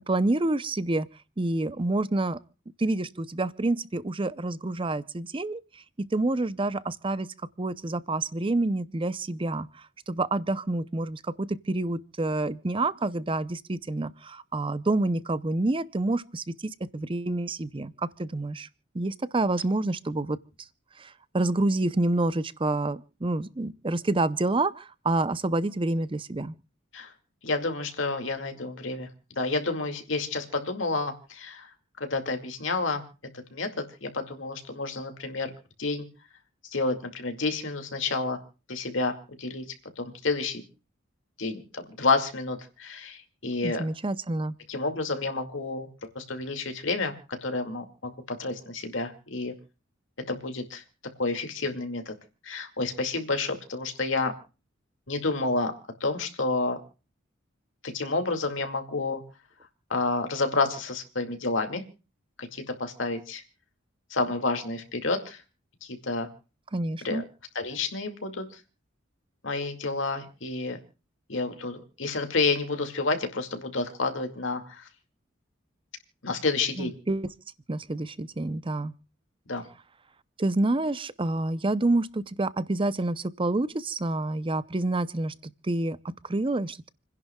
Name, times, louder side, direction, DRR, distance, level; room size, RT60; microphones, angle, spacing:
voice 1, 0.1-1.1 1.4-2.4 2.8-9.7 10.1-18.7 18.9-20.4 21.0-26.5 43.6-44.6 66.7-67.2 76.8-77.3 77.7-78.9 80.4-86.9, right 2 dB, 25° right, 0.7 m, -28 dB
voice 2, 27.4-31.7 32.0-33.0 33.3-35.5 35.8-36.1 36.7-38.4 38.7-39.7 40.0-40.6 41.4-43.8 44.7-49.5 50.3-50.8 51.2-52.1 52.4-54.3 55.1-55.7 56.0-56.8 57.8-59.2 59.9-61.8 62.4-63.4 64.1-65.4 65.8-66.3 67.0-67.2 67.6-68.5 69.4-70.8 71.3-74.9 76.2-77.0 79.5-79.6, left 3 dB, 70° left, 2.3 m, -30 dB
29.5 x 11.0 x 2.3 m
head